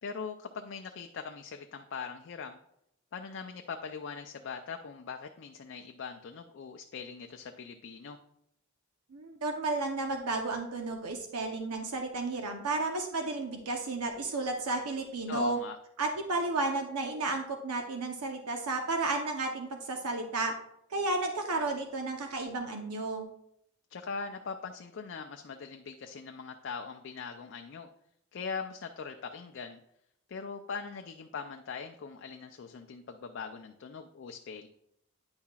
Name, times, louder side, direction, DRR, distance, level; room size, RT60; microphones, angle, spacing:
voice 1, 0.0-2.6 3.1-8.2 15.3-15.8 23.9-27.9 28.3-29.8 30.3-34.7, left 5 dB, 55° left, 5 dB, 0.4 m, -41 dB
voice 2, 9.1-15.6 16.0-20.5 20.9-23.3, right 3 dB, 85° right, 4 dB, 0.8 m, -32 dB
9.5 x 5.6 x 2.3 m, 0.77 s
head